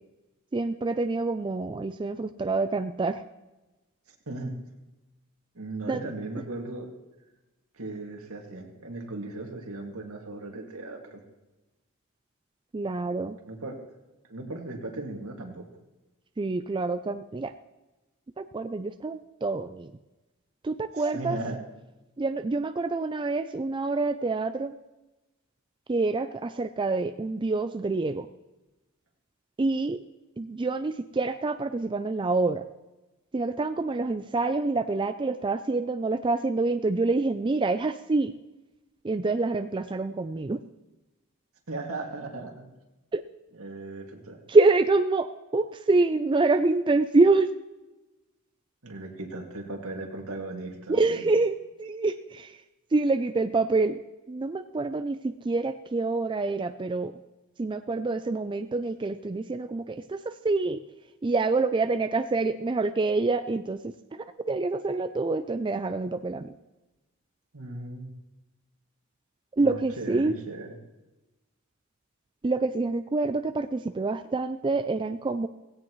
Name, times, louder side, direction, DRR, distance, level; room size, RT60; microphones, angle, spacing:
voice 1, 0.5-3.2 5.9-6.0 12.7-13.4 16.4-17.5 18.4-19.9 20.6-21.4 22.2-24.7 25.9-28.3 29.6-30.0 30.4-32.6 33.3-38.3 39.0-40.6 43.1-43.2 44.5-47.5 50.9-52.6 52.9-54.0 54.3-57.1 57.6-60.8 61.2-66.5 69.6-70.4 72.4-75.5, right 3 dB, 20° right, 9 dB, 0.4 m, -26 dB
voice 2, 4.3-4.6 5.5-6.9 7.7-11.2 13.5-13.8 14.3-15.7 21.0-21.6 41.7-42.7 43.5-44.4 48.8-51.3 67.5-68.1 69.6-70.8, right 2 dB, 75° right, 1 dB, 2.3 m, -37 dB
17.0 x 16.5 x 3.1 m, 1.1 s
head